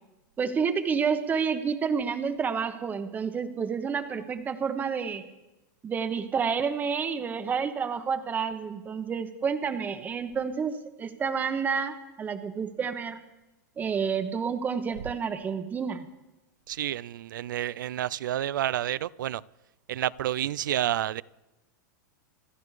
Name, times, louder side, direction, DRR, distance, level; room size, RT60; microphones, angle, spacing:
voice 1, 0.4-5.2 5.8-13.2 13.8-16.1, right 6 dB, 15° right, 9 dB, 1.0 m, -29 dB
voice 2, 16.7-19.4 19.9-21.2, right 12 dB, 90° right, 22 dB, 0.4 m, -29 dB
26.5 x 12.5 x 3.3 m, 1.0 s
supercardioid pair, 145°, 10 cm